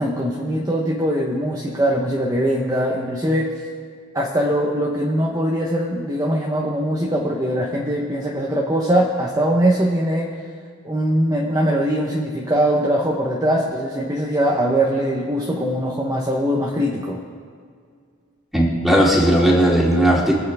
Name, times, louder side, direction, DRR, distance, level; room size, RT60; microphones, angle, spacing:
voice 1, 0.0-3.5 4.1-10.3 10.8-17.2, equal, 15° right, -2 dB, 1.0 m, -21 dB
voice 2, 18.5-20.3, equal, ahead, -4 dB, 2.5 m, -16 dB
23.5 x 8.4 x 3.5 m, 2.1 s
head